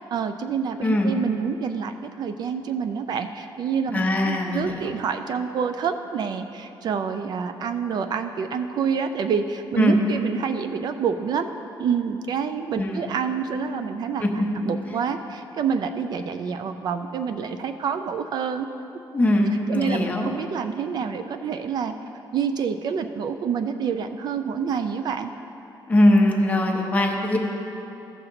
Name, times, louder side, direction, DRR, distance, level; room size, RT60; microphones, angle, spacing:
voice 1, 0.1-11.5 11.8-14.2 14.6-18.7 19.7-21.9 22.3-25.3, right 6 dB, 55° right, 8 dB, 0.4 m, -27 dB
voice 2, 0.8-1.1 3.9-4.9 9.8-10.0 12.8-13.1 14.2-14.4 14.9-15.0 19.1-20.3 25.9-27.4, left 1 dB, 20° left, 0 dB, 0.9 m, -21 dB
14.5 x 5.8 x 3.9 m, 2.9 s
cardioid pair, 145°, 9 cm